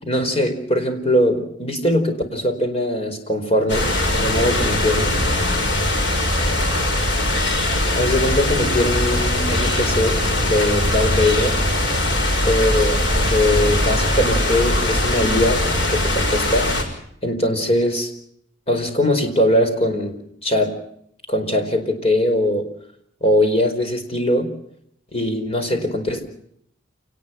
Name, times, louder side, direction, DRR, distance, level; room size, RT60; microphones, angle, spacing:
voice 1, 0.0-3.9 4.2-5.1 7.9-11.6 12.4-16.7 17.2-18.1 18.7-20.2 20.4-20.8 21.3-22.7 23.2-24.5 25.1-26.2, left 1 dB, 30° left, 6 dB, 4.7 m, -21 dB
sound 1, 3.7-16.8, left 1 dB, 65° left, 6.0 m, -20 dB
28.5 x 19.5 x 5.8 m, 0.69 s
head